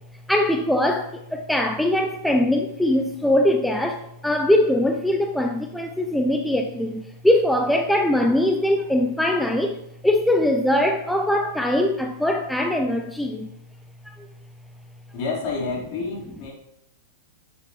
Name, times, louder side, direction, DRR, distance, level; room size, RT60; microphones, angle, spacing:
voice 1, 0.3-9.8 10.0-13.5, left 1 dB, ahead, 0.5 m, -21 dB
voice 2, 15.1-16.5, left 4 dB, 45° left, 4.2 m, -29 dB
12.5 x 7.5 x 3.2 m
hypercardioid pair, 145°, 0 cm